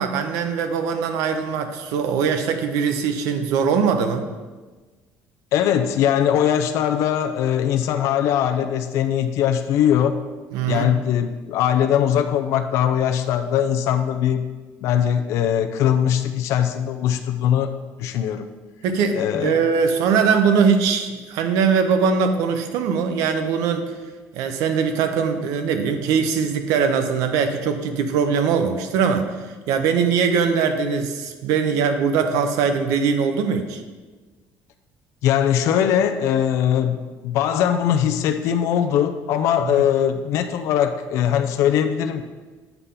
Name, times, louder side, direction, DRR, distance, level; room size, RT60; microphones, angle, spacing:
voice 1, 0.0-4.3 10.5-10.9 18.8-23.9 24.3-33.8 39.6-39.8, right 6 dB, 75° right, 7 dB, 0.8 m, -21 dB
voice 2, 5.5-10.2 10.7-14.4 14.8-17.7 18.0-18.5 19.1-19.6 35.2-37.0 37.2-42.2, left 9 dB, 55° left, 7 dB, 0.4 m, -21 dB
8.1 x 3.7 x 5.6 m, 1.3 s
cardioid pair, 175°, 6 cm